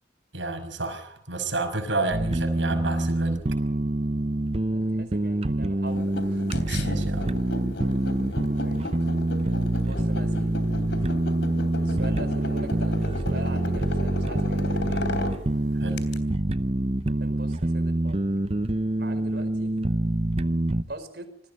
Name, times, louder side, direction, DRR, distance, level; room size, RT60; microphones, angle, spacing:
voice 1, 0.3-3.4 6.7-7.3 15.7-16.1, right 2 dB, 85° right, 6 dB, 5.9 m, -30 dB
sound 1, 2.1-20.8, right 1 dB, 35° right, 0.7 m, -26 dB
voice 2, 4.7-6.5 8.5-8.9 9.8-10.6 11.8-15.1 17.2-18.3 19.0-19.8 20.9-21.4, right 1 dB, 60° right, 9 dB, 4.9 m, -42 dB
sound 2, 5.9-16.2, left 1 dB, 75° left, 3.3 m, -35 dB
27.0 x 20.0 x 5.4 m, 0.70 s
head